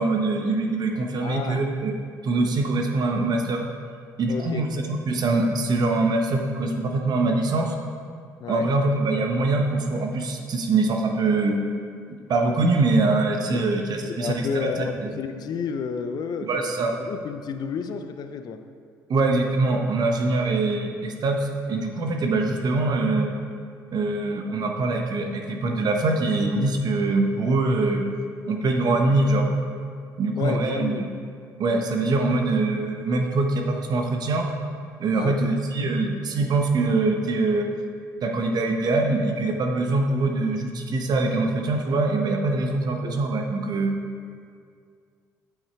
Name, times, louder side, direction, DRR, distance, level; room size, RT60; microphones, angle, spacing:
voice 1, 0.0-1.9 2.2-3.6 4.2-7.7 8.5-11.6 12.3-15.2 16.5-16.9 19.1-23.3 23.9-28.0 28.5-29.5 30.2-31.1 31.6-34.5 35.0-37.7 38.2-43.9, right 2 dB, 50° right, 2 dB, 1.1 m, -23 dB
voice 2, 1.2-1.6 4.3-4.6 8.4-8.7 13.5-13.6 14.2-18.6 30.4-31.0 35.2-35.4 43.0-43.3, left 6 dB, 50° left, 8 dB, 0.7 m, -31 dB
8.8 x 7.2 x 4.6 m, 2.2 s
hypercardioid pair, 55°, 9 cm